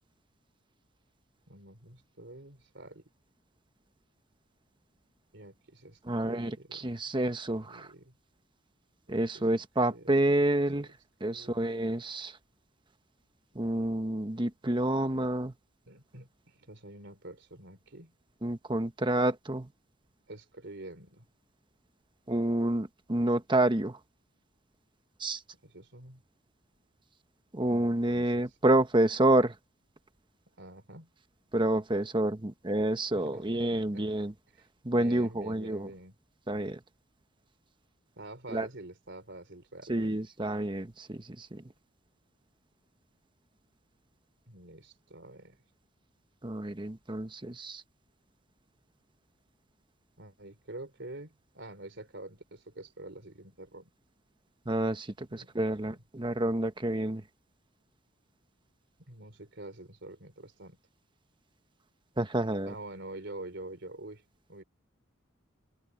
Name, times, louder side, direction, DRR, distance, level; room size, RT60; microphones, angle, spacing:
voice 1, 1.5-3.0 5.3-7.0 7.6-8.1 9.1-10.4 10.8-10.9 11.3-11.7 15.9-18.1 20.3-21.3 25.6-26.2 27.7-28.6 30.6-31.1 33.1-34.1 34.5-34.7 34.9-36.1 38.2-40.2 44.5-45.6 50.2-53.9 55.4-56.0 59.1-60.8 62.7-64.2 64.5-64.6, right 2 dB, 60° right, 4.0 m, -47 dB
voice 2, 6.1-7.9 9.1-10.9 11.2-12.3 13.5-15.5 18.4-19.7 22.3-24.0 25.2-25.4 27.5-29.5 31.5-34.3 34.8-35.9 36.5-36.8 38.5-38.7 39.9-41.6 46.4-47.8 54.7-57.2 62.2-62.7, right 1 dB, 25° right, 1.1 m, -28 dB
head